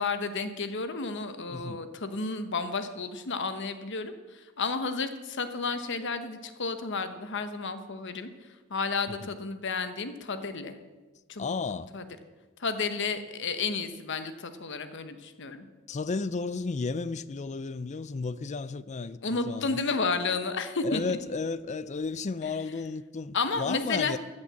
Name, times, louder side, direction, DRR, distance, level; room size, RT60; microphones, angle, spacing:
voice 1, 0.0-8.3 8.7-10.8 11.3-11.5 11.9-12.0 12.6-15.7 19.2-21.2 22.4-22.5 23.3-24.2, left 4 dB, 60° left, 1.0 m, -32 dB
voice 2, 1.5-1.8 9.2-9.3 11.4-11.9 15.9-19.8 20.8-24.2, left 4 dB, 35° left, 0.4 m, -33 dB
14.0 x 6.5 x 7.5 m
head